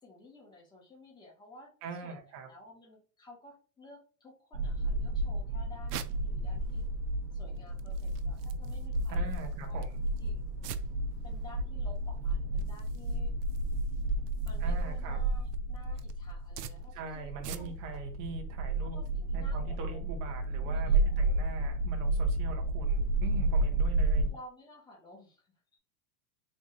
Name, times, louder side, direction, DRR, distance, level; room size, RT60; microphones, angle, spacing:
voice 1, 0.0-6.9 7.3-10.4 11.2-13.3 14.4-17.3 17.6-17.7 18.8-20.0 20.6-21.2 24.3-25.5, left 1 dB, 10° left, -3 dB, 1.2 m, -54 dB
voice 2, 1.8-2.5 9.1-10.0 14.6-15.2 16.9-19.0 19.3-24.3, right 4 dB, 20° right, 3 dB, 0.3 m, -42 dB
sound 1, 4.5-24.3, right 2 dB, 40° right, 0.7 m, -32 dB
sound 2, 5.2-18.0, right 9 dB, 85° right, 0.6 m, -49 dB
3.6 x 3.0 x 2.6 m, 0.36 s
supercardioid pair, 150°, 47 cm